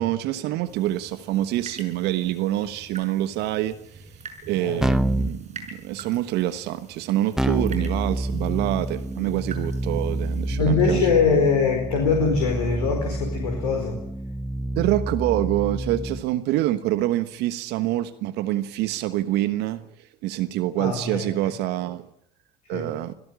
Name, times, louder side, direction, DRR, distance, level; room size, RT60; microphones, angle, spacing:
voice 1, 0.0-4.1 4.5-11.1 14.8-22.1 22.7-23.1, right 14 dB, 55° right, 1.3 m, -26 dB
sound 1, 0.6-10.6, right 4 dB, 35° right, 6.0 m, -45 dB
Keyboard (musical), 4.8-5.4 7.4-16.3, right 1 dB, 5° right, 1.0 m, -28 dB
voice 2, 10.5-14.0 20.8-21.3 22.7-22.9, left 5 dB, 75° left, 4.6 m, -22 dB
26.0 x 17.5 x 8.8 m
figure-of-eight pair, 60°, 20 cm